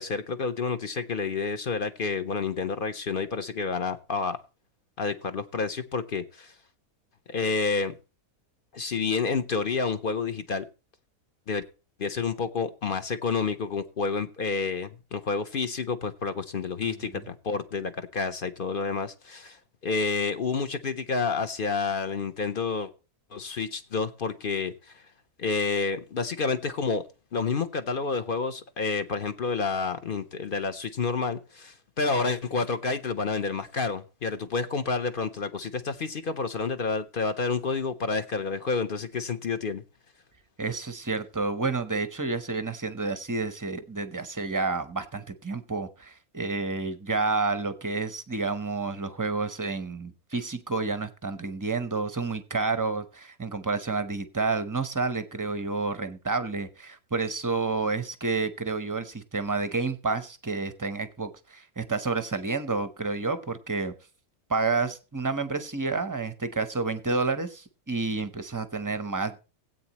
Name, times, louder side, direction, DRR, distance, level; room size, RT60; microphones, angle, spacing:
voice 1, 0.0-4.4 5.0-6.5 7.3-7.9 8.7-10.6 11.5-11.6 12.0-22.9 23.3-25.0 25.4-27.0 27.3-39.8, left 4 dB, 45° left, 10 dB, 0.7 m, -29 dB
voice 2, 40.6-63.9 64.5-69.4, right 3 dB, 20° right, 11 dB, 0.5 m, -30 dB
17.0 x 8.5 x 3.0 m, 0.32 s
omnidirectional pair, 1.6 m